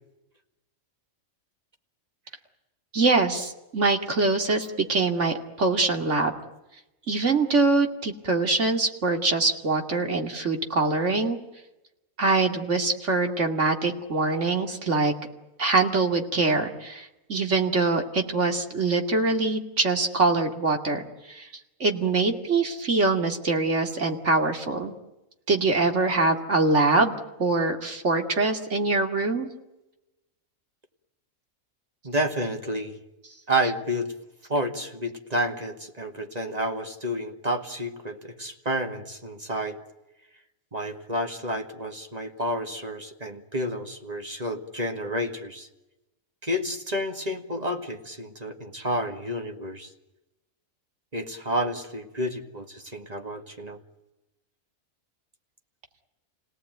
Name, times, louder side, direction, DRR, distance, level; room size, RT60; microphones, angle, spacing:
voice 1, 2.9-6.3 7.1-11.4 12.2-15.1 15.6-21.0 21.3-21.5 21.8-24.9 25.5-29.5, right 3 dB, 55° right, 4 dB, 2.7 m, -24 dB
voice 2, 32.0-33.0 33.5-34.1 34.5-39.8 40.7-45.7 46.4-49.9 51.1-53.8, equal, 30° right, 5 dB, 2.2 m, -30 dB
29.5 x 18.0 x 9.3 m, 0.98 s
omnidirectional pair, 1.5 m